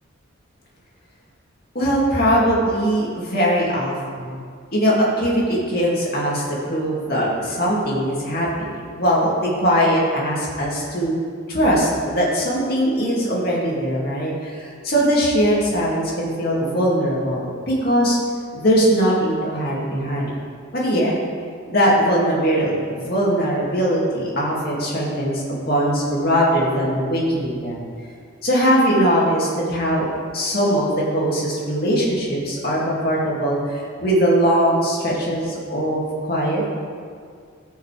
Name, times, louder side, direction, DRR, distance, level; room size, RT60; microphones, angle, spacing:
voice 1, 1.7-4.4 4.7-8.5 8.9-11.1 11.5-18.2 18.5-20.3 20.7-21.1 21.7-27.8 28.4-36.0 36.3-36.6, equal, 50° left, -5 dB, 2.5 m, -20 dB
18.0 x 6.4 x 3.5 m, 2.1 s
head